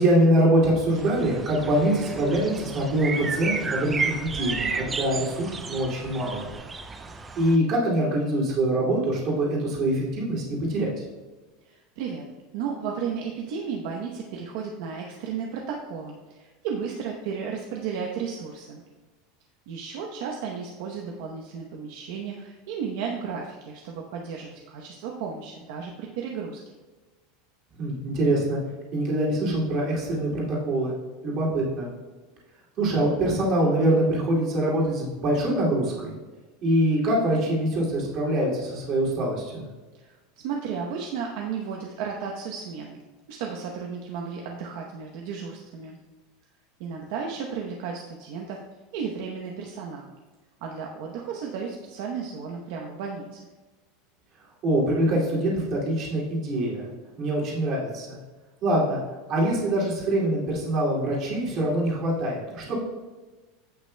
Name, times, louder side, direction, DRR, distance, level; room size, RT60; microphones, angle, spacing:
voice 1, 0.0-6.5 7.4-10.9 27.8-28.6 28.9-30.9 31.2-31.9 32.8-36.1 36.6-39.6 54.6-56.9 57.2-58.2 58.6-59.0 59.3-62.7, right 1 dB, 30° right, -5 dB, 2.4 m, -24 dB
sound 1, 1.0-7.6, right 4 dB, 10° right, 0.3 m, -33 dB
voice 2, 11.6-12.2 12.5-18.8 19.7-26.6 39.9-40.2 40.4-43.0 43.3-46.0 46.8-48.6 48.9-50.1 50.6-53.4, right 6 dB, 55° right, 0 dB, 0.8 m, -34 dB
15.0 x 5.8 x 2.2 m, 1.3 s
supercardioid pair, 180°, 0 cm